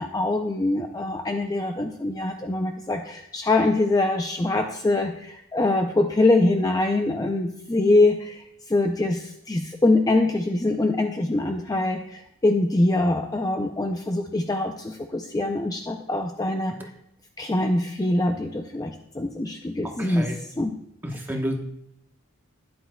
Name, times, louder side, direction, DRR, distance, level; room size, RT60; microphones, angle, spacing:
voice 1, 0.0-16.8 17.4-20.7 21.1-21.2, left 2 dB, 15° left, 4 dB, 0.4 m, -24 dB
voice 2, 20.0-20.4 21.0-21.6, equal, 10° right, 1 dB, 1.0 m, -29 dB
13.5 x 10.5 x 2.2 m, 0.78 s
head